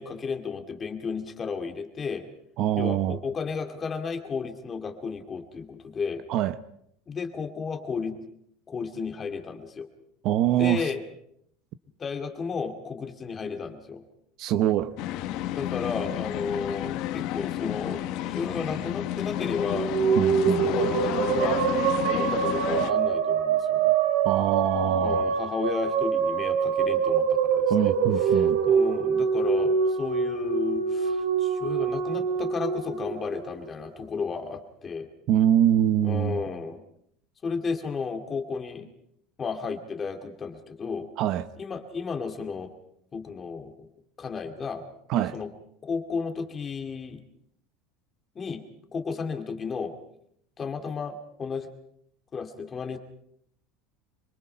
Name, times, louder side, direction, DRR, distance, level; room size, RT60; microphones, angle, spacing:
voice 1, 0.0-2.2 2.8-6.2 7.1-8.2 8.7-9.9 10.6-11.0 12.0-14.0 15.6-19.9 20.5-21.6 22.1-23.9 25.0-35.1 36.0-36.8 37.4-38.9 39.4-41.1 41.6-42.7 43.1-43.9 44.2-44.8 45.3-45.5 45.8-47.2 48.4-48.6 48.9-49.9 50.6-51.7 52.3-53.0, left 5 dB, 20° left, 2.2 m, -33 dB
voice 2, 2.6-3.2 6.3-6.6 10.2-10.8 14.4-15.0 20.2-20.7 24.2-25.3 27.7-28.6 35.3-36.4 41.2-41.5 45.1-45.4, right 11 dB, 45° right, 0.8 m, -24 dB
sound 1, 15.0-22.9, left 12 dB, 50° left, 1.2 m, -31 dB
sound 2, 19.6-34.0, right 6 dB, 90° right, 4.7 m, -25 dB
25.5 x 23.0 x 5.6 m
cardioid pair, 160°, 0 cm